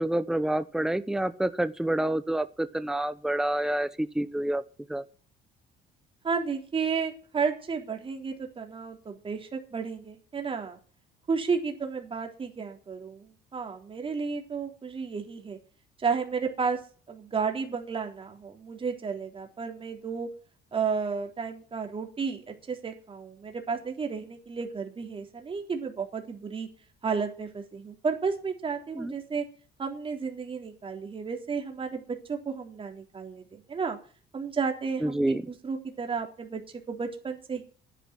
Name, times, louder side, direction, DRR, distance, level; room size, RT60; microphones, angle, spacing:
voice 1, 0.0-4.6 4.9-5.0 28.9-29.1 35.0-35.4, right 1 dB, 5° right, 0.9 m, -28 dB
voice 2, 6.2-10.8 11.3-15.6 16.0-16.8 17.1-20.3 20.7-26.7 27.0-29.4 29.8-34.0 34.3-36.6 36.9-37.6, right 5 dB, 30° right, 3.8 m, -32 dB
11.0 x 9.9 x 9.2 m
cardioid pair, 110°, 17 cm